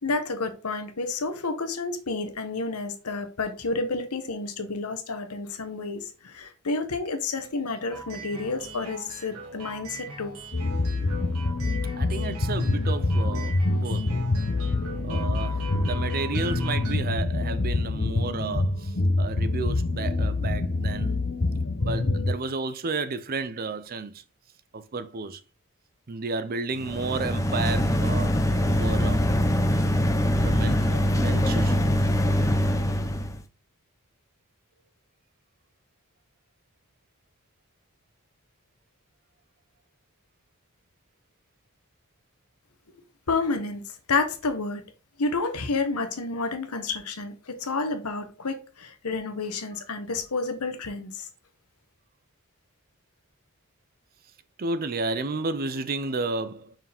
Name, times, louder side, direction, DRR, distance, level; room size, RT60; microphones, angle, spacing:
voice 1, 0.0-10.3 43.3-43.8 44.1-44.8 45.2-51.3, left 3 dB, 90° left, 1.1 m, -30 dB
sound 1, 7.9-16.9, right 4 dB, 80° right, 1.7 m, -41 dB
sound 2, 10.5-22.3, left 2 dB, 45° left, 0.7 m, -26 dB
voice 2, 12.0-14.1 15.0-21.2 21.8-24.2 24.7-25.4 26.1-28.4 28.8-29.3 30.4-31.9 54.6-56.8, right 3 dB, 45° right, 0.6 m, -32 dB
sound 3, 26.8-33.4, equal, 15° left, 0.6 m, -23 dB
5.9 x 4.7 x 3.5 m
head